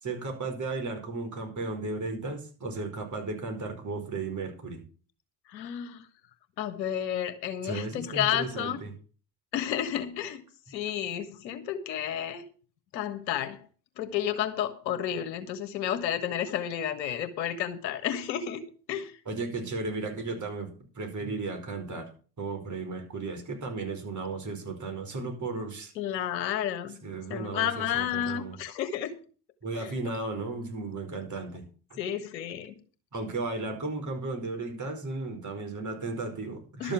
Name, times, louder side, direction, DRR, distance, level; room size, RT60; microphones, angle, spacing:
voice 1, 0.0-4.8 7.6-8.9 19.2-22.1 22.4-25.9 27.0-28.6 29.6-32.0 33.1-36.9, right 3 dB, 35° right, 4 dB, 4.8 m, -35 dB
voice 2, 5.5-6.0 6.6-8.8 9.5-10.4 10.7-12.4 12.9-13.6 14.0-18.6 18.9-19.1 26.0-27.0 27.3-29.1 29.8-29.9 32.0-32.7 36.8-36.9, left 10 dB, 85° left, 10 dB, 1.5 m, -31 dB
12.0 x 7.0 x 7.0 m, 0.39 s
hypercardioid pair, 60°, 50 cm